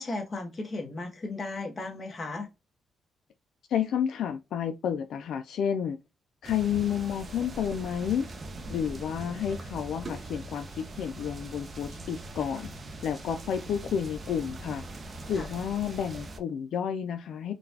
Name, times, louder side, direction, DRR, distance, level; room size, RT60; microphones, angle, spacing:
voice 1, 0.0-2.5 15.4-15.5, left 2 dB, 30° left, 1.1 m, -35 dB
voice 2, 3.7-6.0 6.4-8.3 8.7-12.7 13.0-14.8 15.3-17.5, left 8 dB, 75° left, 0.3 m, -30 dB
sound 1, 6.4-16.4, right 2 dB, 35° right, 0.6 m, -41 dB
3.8 x 2.3 x 2.7 m
cardioid pair, 125°, 0 cm